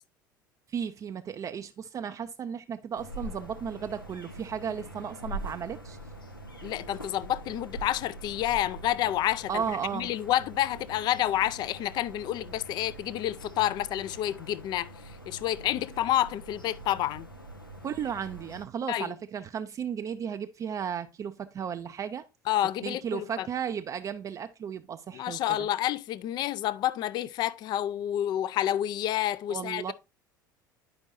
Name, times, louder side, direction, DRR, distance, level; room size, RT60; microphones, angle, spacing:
voice 1, 0.7-6.0 9.5-10.1 17.8-22.2 22.8-25.4 29.5-29.9, right 7 dB, 30° right, 0.4 m, -34 dB
sound 1, 2.9-18.7, right 1 dB, 90° left, 0.7 m, -44 dB
voice 2, 6.6-9.6 9.9-17.3 18.9-19.1 22.5-23.5 25.1-29.9, left 12 dB, 40° left, 0.4 m, -29 dB
9.6 x 5.2 x 2.5 m
figure-of-eight pair, 65°, 11 cm